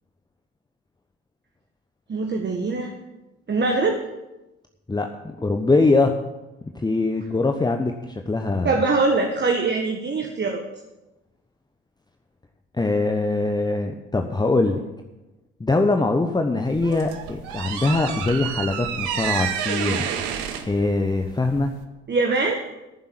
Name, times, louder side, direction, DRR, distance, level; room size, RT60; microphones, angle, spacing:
voice 1, 2.1-2.9 3.5-4.0 8.6-10.6 22.1-22.6, right 3 dB, 30° right, 2 dB, 1.6 m, -22 dB
voice 2, 4.9-6.1 6.7-8.8 12.8-14.8 15.6-20.0 20.7-21.7, left 3 dB, 10° left, 4 dB, 1.0 m, -22 dB
sound 1, 16.6-21.8, right 8 dB, 70° right, 1.3 m, -30 dB
14.0 x 7.4 x 7.5 m, 1.0 s
figure-of-eight pair, 50°, 34 cm